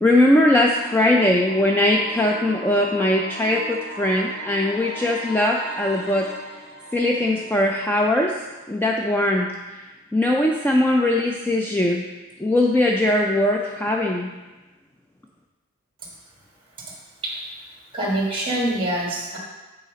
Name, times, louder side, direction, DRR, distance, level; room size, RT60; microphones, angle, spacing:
voice 1, 0.0-6.3 6.9-8.4 8.7-9.9 10.1-12.0 12.4-14.3, left 1 dB, 10° left, 0 dB, 0.3 m, -20 dB
sound 1, 0.8-8.7, right 1 dB, 30° left, 2.4 m, -37 dB
voice 2, 17.9-19.4, right 1 dB, 25° right, -3 dB, 1.7 m, -25 dB
8.2 x 4.1 x 5.1 m, 1.2 s
head